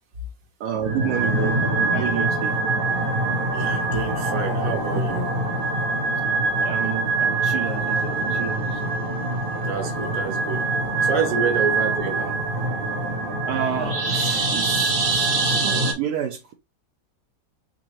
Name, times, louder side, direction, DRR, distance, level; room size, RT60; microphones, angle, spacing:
voice 1, 0.6-1.6 1.9-2.6 6.6-8.8 11.3-11.5 13.5-14.9 15.3-16.5, right 9 dB, 80° right, 1.2 m, -30 dB
sound 1, 0.8-15.9, right 3 dB, 45° right, 1.0 m, -24 dB
voice 2, 3.5-5.3 9.6-10.6 11.0-12.4, right 6 dB, 60° right, 1.5 m, -28 dB
3.8 x 3.8 x 2.9 m
omnidirectional pair, 1.7 m